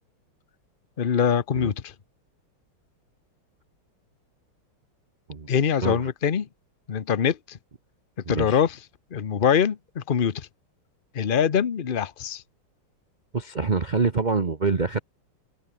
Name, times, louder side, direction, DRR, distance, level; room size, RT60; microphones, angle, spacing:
voice 1, 1.0-1.9 5.5-6.5 6.9-7.6 8.3-8.8 9.1-10.5 11.1-12.4, left 7 dB, 70° left, 0.5 m, -23 dB
voice 2, 8.3-8.6 13.3-15.0, right 4 dB, 30° right, 0.8 m, -25 dB
omnidirectional pair, 2.4 m